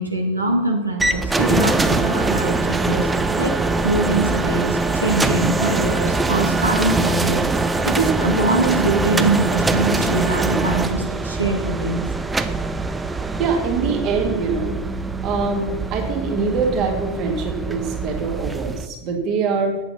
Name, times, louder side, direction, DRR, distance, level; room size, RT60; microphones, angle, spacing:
voice 1, 0.0-3.1 3.4-3.6 3.8-7.4 7.8-12.1, right 2 dB, 85° right, 1 dB, 1.3 m, -23 dB
sound 1, 1.0-18.9, right 3 dB, 10° right, 0.6 m, -22 dB
voice 2, 13.4-14.7 15.2-19.8, right 4 dB, 35° right, 3 dB, 1.9 m, -23 dB
8.5 x 8.3 x 5.6 m, 1.1 s
figure-of-eight pair, 90°, 0 cm